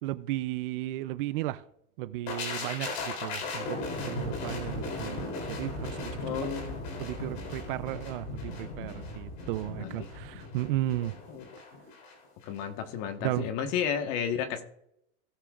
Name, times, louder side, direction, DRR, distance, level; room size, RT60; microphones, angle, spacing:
voice 1, 0.0-1.6 2.0-3.8 4.1-6.1 7.0-11.2 13.2-13.5, right 15 dB, 50° right, 0.5 m, -34 dB
sound 1, 2.3-12.1 12.4-12.6, left 3 dB, 60° left, 3.3 m, -37 dB
voice 2, 6.2-6.8 9.8-10.3 11.3-11.4 12.5-14.6, left 8 dB, 45° left, 1.4 m, -32 dB
17.5 x 6.8 x 2.5 m
supercardioid pair, 140°, 35 cm